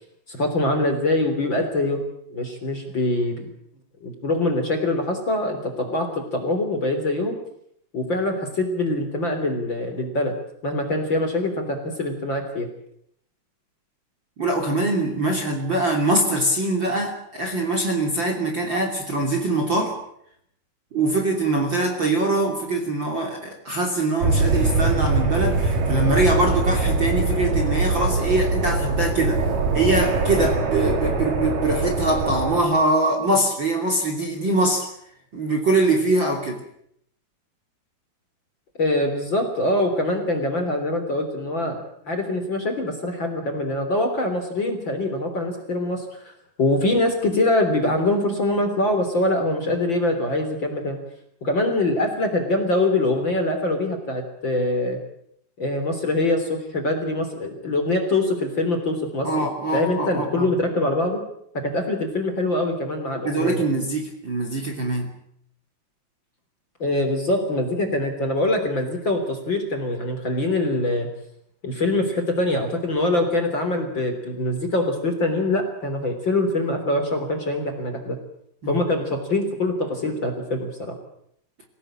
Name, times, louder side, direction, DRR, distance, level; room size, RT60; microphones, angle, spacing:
voice 1, 0.3-2.0 2.3-3.5 4.0-7.4 7.9-10.3 10.6-12.7 38.8-41.8 42.1-46.3 46.6-51.0 51.4-55.0 55.6-59.3 59.7-61.2 61.5-63.7 66.8-71.1 71.6-78.2 78.7-80.9, left 2 dB, 30° left, 4 dB, 3.7 m, -24 dB
voice 2, 14.4-19.9 20.9-29.4 29.7-34.9 35.3-36.6 59.2-60.5 63.2-65.1 78.6-78.8, right 2 dB, 30° right, 2 dB, 3.2 m, -23 dB
sound 1, 24.2-32.6, right 3 dB, 55° right, 4.4 m, -22 dB
26.0 x 17.5 x 8.8 m, 0.72 s
omnidirectional pair, 4.8 m